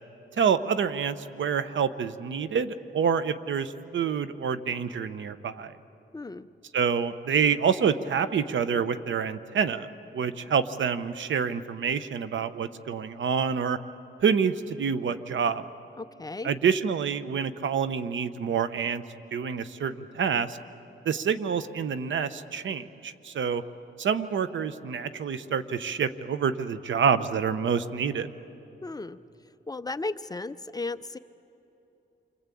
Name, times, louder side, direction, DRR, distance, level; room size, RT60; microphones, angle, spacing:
voice 1, 0.3-5.7 6.7-9.9 10.1-13.8 14.2-15.6 16.4-19.0 19.3-20.6 21.0-23.6 24.0-28.3, right 7 dB, 80° right, 12 dB, 1.0 m, -27 dB
voice 2, 6.1-6.5 16.0-16.5 28.8-29.2 29.7-31.2, left 3 dB, 20° left, 12 dB, 0.6 m, -35 dB
28.5 x 24.5 x 8.5 m, 3.0 s
wide cardioid pair, 130°, 19 cm